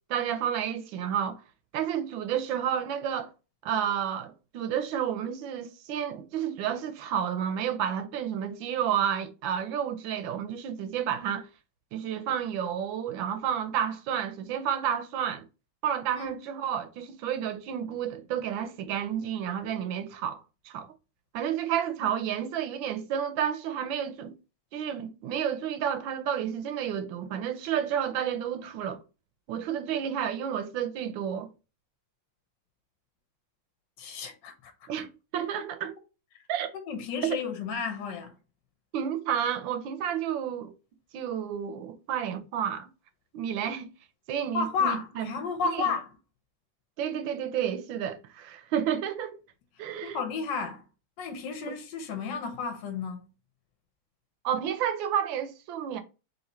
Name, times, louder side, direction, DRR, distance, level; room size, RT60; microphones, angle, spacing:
voice 1, 0.1-1.4 1.7-3.3 3.6-11.5 11.9-15.4 15.8-20.4 20.6-20.9 21.3-24.4 24.7-29.0 29.5-31.5 34.9-35.9 36.5-36.7 37.2-37.3 38.9-40.7 41.1-42.9 43.3-43.9 44.3-45.3 45.7-45.9 47.0-49.4 49.8-50.2 51.6-51.7 54.4-56.0, right 9 dB, 75° right, 1.3 m, -31 dB
voice 2, 34.0-34.7 36.7-38.3 44.5-46.1 50.0-50.8 51.2-53.3, left 5 dB, 65° left, 1.3 m, -32 dB
3.8 x 2.8 x 4.1 m
omnidirectional pair, 2.2 m